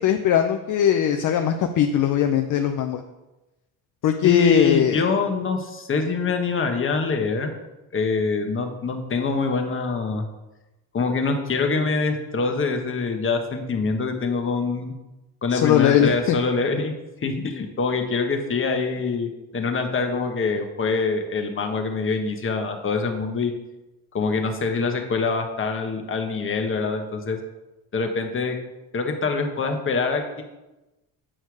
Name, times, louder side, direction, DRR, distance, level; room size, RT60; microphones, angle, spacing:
voice 1, 0.0-3.0 4.0-5.0 15.5-16.4, left 9 dB, 50° left, 6 dB, 0.7 m, -20 dB
voice 2, 4.2-7.5 7.9-10.2 10.9-14.9 15.4-16.9 17.2-23.5 24.1-27.4 27.9-28.6 28.9-30.4, left 4 dB, 30° left, 4 dB, 1.3 m, -24 dB
8.9 x 4.4 x 4.7 m, 1.0 s
supercardioid pair, 90°, 39 cm